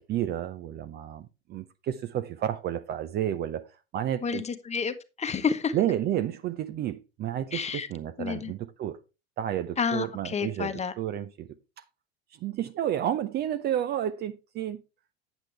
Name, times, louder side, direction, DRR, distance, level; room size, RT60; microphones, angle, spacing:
voice 1, 0.0-4.4 5.7-9.0 9.4-11.5 11.8-11.9 12.3-14.8, right 11 dB, 30° right, 0.6 m, -31 dB
voice 2, 4.2-5.7 7.5-7.9 8.2-8.5 9.8-10.9, left 6 dB, 20° left, 1.1 m, -30 dB
8.9 x 8.1 x 3.3 m
figure-of-eight pair, 75°, 33 cm